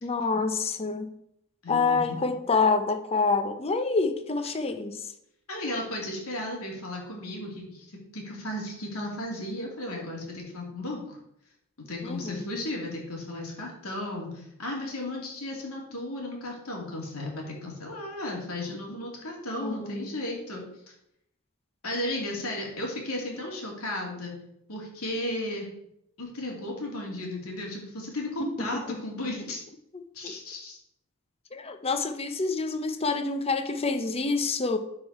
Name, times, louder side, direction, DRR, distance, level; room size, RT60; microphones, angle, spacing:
voice 1, 0.0-1.1 1.7-5.0 12.0-12.4 19.6-20.1 28.4-29.0 30.2-30.3 31.5-34.8, left 4 dB, 25° left, 0.7 m, -27 dB
voice 2, 1.6-2.2 5.5-7.9 8.1-11.2 11.8-20.6 21.8-24.3 24.7-25.7 26.2-29.6 30.1-30.8, left 1 dB, 80° left, 2.8 m, -34 dB
12.0 x 4.9 x 4.2 m
head